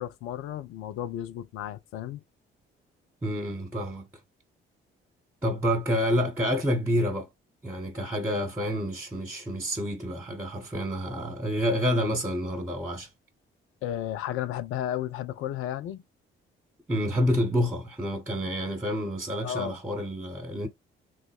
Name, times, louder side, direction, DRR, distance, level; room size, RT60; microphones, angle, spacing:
voice 1, 0.0-2.2 13.8-16.0 19.4-19.8, left 11 dB, 50° left, 0.4 m, -33 dB
voice 2, 3.2-4.1 5.4-7.3 7.6-13.1 16.9-20.7, equal, 10° right, 1.0 m, -28 dB
3.2 x 2.0 x 3.4 m
figure-of-eight pair, 40°, 29 cm